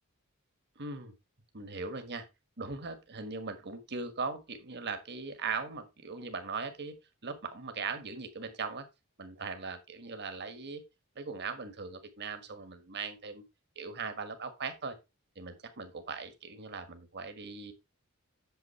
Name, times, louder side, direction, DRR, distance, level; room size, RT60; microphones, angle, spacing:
voice 1, 0.7-1.1 1.5-2.3 2.6-7.0 7.2-8.8 9.2-10.8 11.1-13.4 13.7-15.0 15.3-17.7, right 4 dB, 50° right, 8 dB, 1.5 m, -39 dB
8.4 x 7.4 x 3.2 m, 0.24 s
head